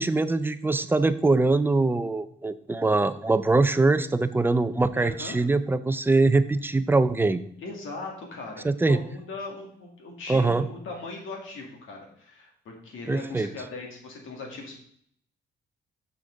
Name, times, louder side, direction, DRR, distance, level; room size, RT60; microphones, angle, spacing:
voice 1, 0.0-7.4 8.6-9.0 10.3-10.7 13.1-13.5, right 3 dB, 10° right, 12 dB, 0.4 m, -23 dB
voice 2, 4.9-5.4 7.6-14.8, left 3 dB, 85° left, 0 dB, 2.5 m, -39 dB
6.6 x 6.1 x 4.8 m, 0.64 s
cardioid pair, 130°, 20 cm